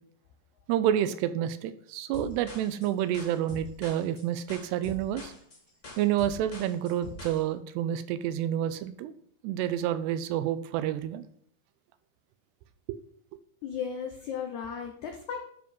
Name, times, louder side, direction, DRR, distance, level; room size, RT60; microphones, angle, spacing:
voice 1, 0.7-5.3 6.0-9.1 9.4-11.3 12.9-13.0, right 11 dB, 85° right, 13 dB, 2.8 m, -29 dB
sound 1, 2.1-7.4, left 1 dB, 25° left, 1.9 m, -44 dB
voice 2, 13.6-15.4, left 7 dB, 90° left, 3 dB, 1.6 m, -35 dB
12.0 x 5.0 x 5.3 m, 0.63 s
omnidirectional pair, 4.7 m